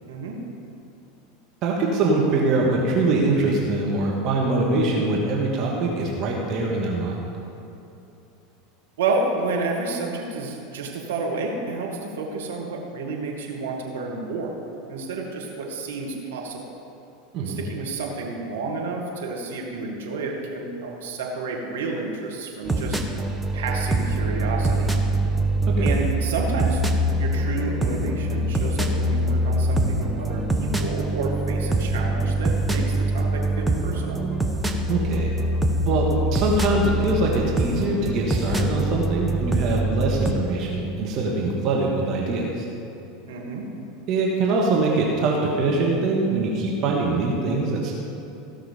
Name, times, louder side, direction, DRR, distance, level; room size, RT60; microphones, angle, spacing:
voice 1, 0.1-0.4 9.0-14.5 14.9-16.7 17.4-23.0 23.5-24.9 25.8-26.8 27.2-34.2 43.3-43.6, right 3 dB, 75° right, 0 dB, 1.9 m, -30 dB
voice 2, 1.6-7.2 17.3-17.6 25.7-25.9 34.9-35.3 35.9-42.6 44.1-47.9, right 2 dB, 50° right, -2 dB, 1.7 m, -23 dB
sound 1, 22.6-40.3, right 1 dB, 5° right, 1.0 m, -24 dB
16.0 x 6.1 x 5.2 m, 2.8 s
hypercardioid pair, 85°, 0 cm